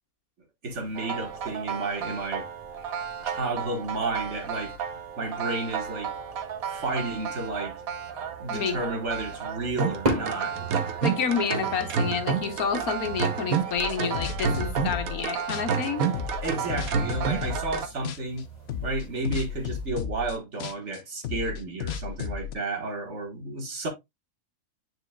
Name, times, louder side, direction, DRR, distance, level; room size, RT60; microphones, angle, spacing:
voice 1, 0.6-2.5 3.2-4.7 5.2-6.1 6.7-7.8 8.4-10.5 16.4-18.4 18.8-23.9, right 2 dB, 55° right, 1.9 m, -32 dB
sound 1, 0.7-19.9, right 1 dB, 30° right, 2.6 m, -41 dB
sound 2, 0.9-17.9, right 6 dB, 80° right, 1.4 m, -31 dB
voice 2, 11.0-16.1, left 6 dB, 85° left, 1.8 m, -29 dB
sound 3, 13.8-15.2 15.5-17.8 18.0-18.4 18.7-22.5, left 7 dB, 55° left, 0.8 m, -34 dB
9.8 x 5.0 x 2.3 m
omnidirectional pair, 1.5 m